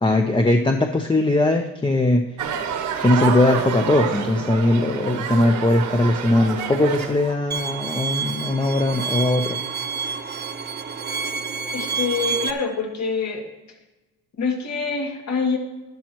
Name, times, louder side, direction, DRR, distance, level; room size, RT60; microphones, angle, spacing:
voice 1, 0.0-2.2 3.0-9.6, left 2 dB, 15° left, 4 dB, 0.7 m, -20 dB
sound 1, 2.4-7.3, right 7 dB, 75° right, 1.3 m, -28 dB
Bowed string instrument, 7.5-12.5, right 6 dB, 35° right, 0.9 m, -28 dB
voice 2, 11.7-13.4 14.4-15.6, left 5 dB, 65° left, 1 dB, 2.3 m, -25 dB
12.0 x 11.5 x 3.0 m, 1.1 s
cardioid pair, 90°, 30 cm